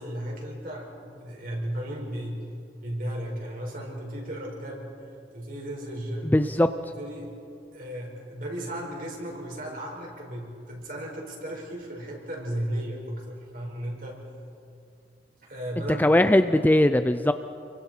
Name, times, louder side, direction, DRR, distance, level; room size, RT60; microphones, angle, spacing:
voice 1, 0.0-2.5 2.8-4.9 5.3-6.3 7.0-7.3 7.7-14.2 15.4-16.2, right 1 dB, 50° right, -1 dB, 5.0 m, -35 dB
voice 2, 6.2-6.7 16.0-17.3, left 1 dB, 10° left, 10 dB, 0.4 m, -20 dB
29.0 x 23.5 x 4.5 m, 2.5 s
head